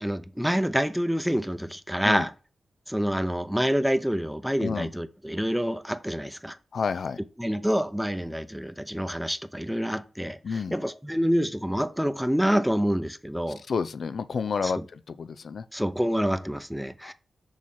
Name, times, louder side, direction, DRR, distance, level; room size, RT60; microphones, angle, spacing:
voice 1, 0.0-2.3 2.9-6.6 7.4-13.6 14.6-14.9 15.7-17.1, equal, ahead, 0.7 m, -27 dB
voice 2, 6.7-7.2 10.4-10.7 13.7-14.8 15.2-15.6 17.0-17.1, left 5 dB, 70° left, 0.5 m, -29 dB
6.4 x 3.1 x 5.6 m
cardioid pair, 60°, 0 cm